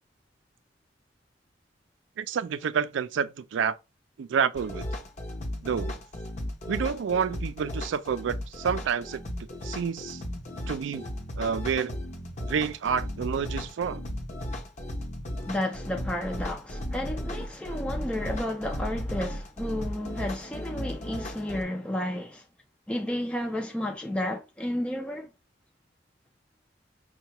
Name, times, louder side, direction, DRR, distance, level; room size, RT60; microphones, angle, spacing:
voice 1, 2.2-3.7 4.2-4.9 5.6-5.9 6.7-9.2 9.6-10.2 10.7-11.1 11.4-11.9 12.4-14.0, right 7 dB, 80° right, 0.4 m, -29 dB
sound 1, 4.5-21.6, left 1 dB, 40° left, 0.6 m, -35 dB
voice 2, 15.5-22.5 22.9-25.3, left 1 dB, 5° left, 0.3 m, -32 dB
5.4 x 2.2 x 2.8 m
head